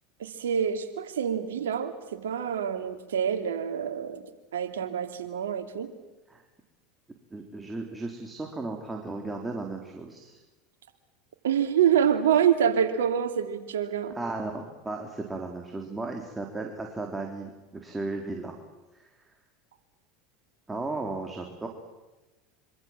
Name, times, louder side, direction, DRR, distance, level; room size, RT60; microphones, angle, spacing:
voice 1, 0.2-4.2 4.5-5.9 11.4-14.2, right 8 dB, 80° right, 7 dB, 2.8 m, -26 dB
voice 2, 7.3-10.4 14.1-18.6 18.9-19.1 20.7-21.7, right 3 dB, 15° right, 2 dB, 4.1 m, -35 dB
26.5 x 25.5 x 7.6 m, 1.1 s
hypercardioid pair, 85°, 0 cm